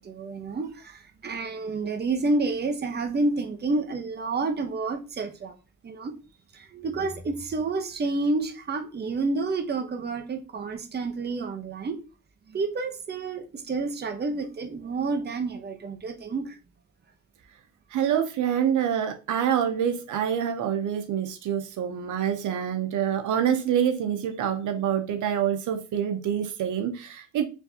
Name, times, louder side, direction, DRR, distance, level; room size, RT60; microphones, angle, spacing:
voice 1, 0.0-5.5 5.8-6.1 6.5-12.0 12.5-16.6, right 3 dB, 35° right, 0.9 m, -29 dB
voice 2, 17.9-27.4, right 9 dB, 75° right, 0.8 m, -26 dB
4.5 x 3.4 x 2.8 m
cardioid pair, 90°, 30 cm